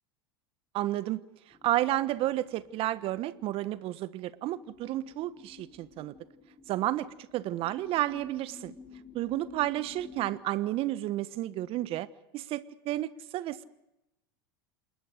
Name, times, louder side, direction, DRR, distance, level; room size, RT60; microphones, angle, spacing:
voice 1, 0.7-1.2 1.6-6.1 6.7-7.1 7.3-8.7 9.1-12.1 12.3-13.6, right 15 dB, 50° right, 15 dB, 1.3 m, -31 dB
sound 1, 1.5-10.4, left 4 dB, 15° left, 5.3 m, -53 dB
27.5 x 21.0 x 6.6 m, 0.91 s
hypercardioid pair, 85°, 13 cm